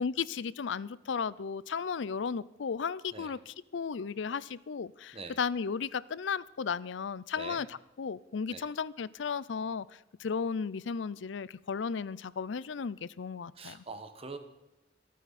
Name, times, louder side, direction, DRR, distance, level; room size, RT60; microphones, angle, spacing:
voice 1, 0.0-7.7 8.0-9.9 10.2-13.8, left 6 dB, 75° left, 0.5 m, -35 dB
voice 2, 13.5-14.4, right 3 dB, 30° right, 1.5 m, -43 dB
27.5 x 9.2 x 4.2 m
head